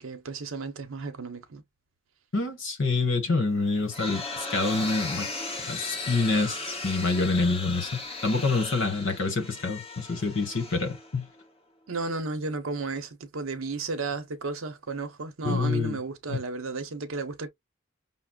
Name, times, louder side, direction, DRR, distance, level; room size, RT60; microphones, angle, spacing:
voice 1, 0.0-1.6 11.9-17.5, right 3 dB, 70° right, 0.8 m, -33 dB
voice 2, 2.3-5.3 5.6-11.3 15.4-16.0 16.3-16.4, left 3 dB, 65° left, 1.1 m, -27 dB
sound 1, 3.5-11.4, left 3 dB, 30° left, 1.1 m, -37 dB
5.8 x 2.0 x 2.3 m
head